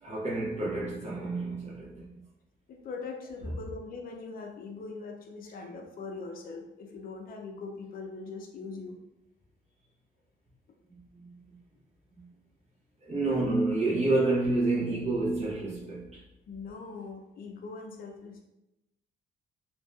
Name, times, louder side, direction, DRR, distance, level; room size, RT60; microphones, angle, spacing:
voice 1, 0.0-2.2 10.9-11.6 12.1-12.3 13.0-16.2, right 2 dB, 35° right, 0.7 m, -29 dB
voice 2, 2.7-9.0 13.2-13.4 16.5-18.4, left 4 dB, 45° left, 0.4 m, -41 dB
2.6 x 2.2 x 2.3 m
cardioid pair, 90°, 20 cm